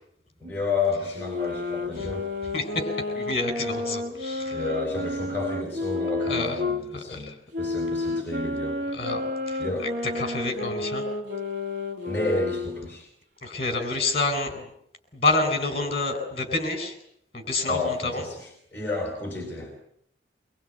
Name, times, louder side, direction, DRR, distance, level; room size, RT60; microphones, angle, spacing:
voice 1, 0.4-2.3 4.5-9.1 9.6-9.9 12.0-13.1 17.6-19.7, left 3 dB, 10° left, 2 dB, 4.2 m, -31 dB
sound 1, 1.1-6.8 7.5-12.9, left 2 dB, 70° right, 3.2 m, -31 dB
voice 2, 2.5-2.9 3.2-4.6 6.3-6.5 7.1-7.2 8.9-9.9 10.2-11.0 13.4-14.6 15.1-16.9 17.3-18.2, left 3 dB, 35° left, 7 dB, 4.4 m, -28 dB
24.0 x 22.5 x 9.1 m, 0.72 s
head